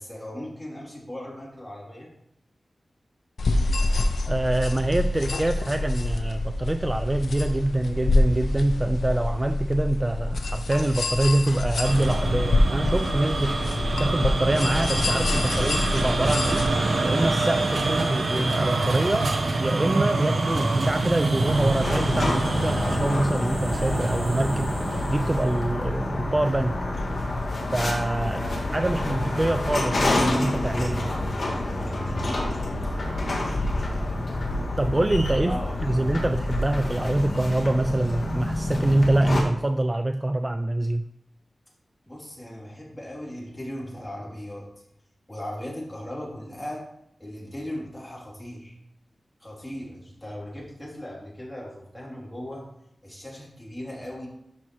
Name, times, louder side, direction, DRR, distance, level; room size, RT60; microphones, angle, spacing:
voice 1, 0.0-2.1 17.8-18.2 28.2-29.2 32.8-33.0 35.4-36.0 42.0-44.7 45.3-46.8 47.2-48.8 49.4-52.7 53.0-54.3, left 1 dB, 10° left, -4 dB, 2.9 m, -38 dB
sound 1, 3.4-16.7, left 2 dB, 90° left, 0.7 m, -26 dB
voice 2, 4.3-16.6 17.0-26.8 27.7-28.5 28.7-31.1 34.8-41.1, right 1 dB, 20° right, 9 dB, 0.3 m, -25 dB
sound 2, 11.8-25.7, right 2 dB, 65° right, 1.0 m, -26 dB
sound 3, 21.4-39.4, left 2 dB, 50° left, 2.0 m, -28 dB
12.0 x 5.6 x 3.1 m, 0.78 s
wide cardioid pair, 120°, 0 cm